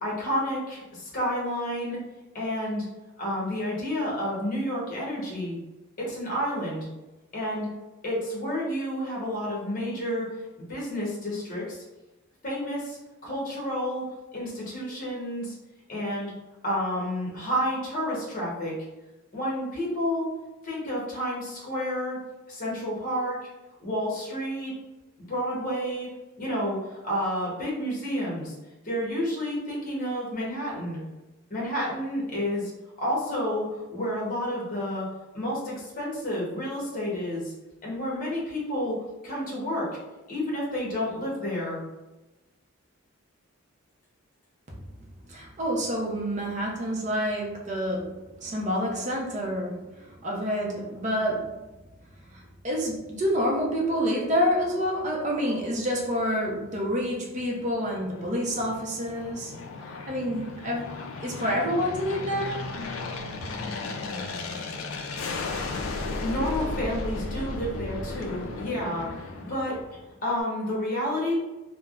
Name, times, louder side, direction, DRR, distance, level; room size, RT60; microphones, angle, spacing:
voice 1, 0.0-2.0 2.3-2.9 3.2-5.6 6.0-6.9 7.3-7.7 8.0-10.3 10.6-11.8 12.4-15.6 15.9-16.3 16.6-18.8 19.3-20.3 20.6-22.2 22.5-23.4 23.8-24.7 25.3-26.1 26.4-28.5 28.8-31.0 31.5-32.7 33.0-35.1 35.3-37.5 37.8-39.9 40.3-41.8 66.2-69.8 70.2-71.4, equal, 40° left, -5 dB, 0.9 m, -30 dB
voice 2, 45.3-51.6 52.3-59.5 59.9-60.8 61.2-62.7, equal, 35° right, -2 dB, 0.5 m, -28 dB
Aircraft, 57.4-70.1, left 3 dB, 60° left, 0.3 m, -35 dB
3.3 x 2.0 x 2.4 m, 1.1 s
head